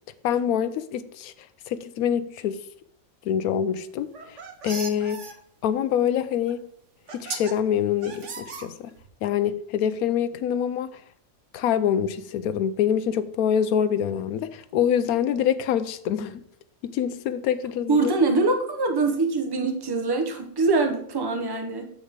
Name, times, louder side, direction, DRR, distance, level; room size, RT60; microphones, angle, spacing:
voice 1, 0.2-1.3 1.7-2.6 3.2-4.4 4.6-5.3 5.6-6.6 7.1-8.9 9.2-11.0 11.5-16.4 16.8-18.1, left 9 dB, 85° left, 1.1 m, -25 dB
sound 1, 4.0-5.3 6.5-6.6 7.1-7.5 8.0-9.1, right 5 dB, 55° right, 1.3 m, -36 dB
voice 2, 17.9-21.9, right 3 dB, 20° right, 0.8 m, -23 dB
7.5 x 7.2 x 3.6 m
omnidirectional pair, 1.5 m